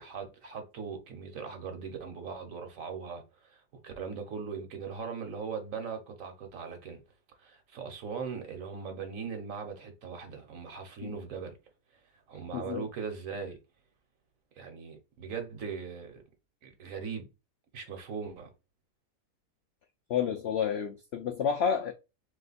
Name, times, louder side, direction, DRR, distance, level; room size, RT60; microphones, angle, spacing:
voice 1, 0.0-7.0 7.4-11.6 12.3-13.6 14.6-16.2 16.6-17.3 17.7-18.5, right 5 dB, 60° right, 1.2 m, -39 dB
voice 2, 12.5-12.9 20.1-21.9, left 7 dB, 80° left, 0.5 m, -30 dB
3.3 x 3.0 x 4.0 m
omnidirectional pair, 1.6 m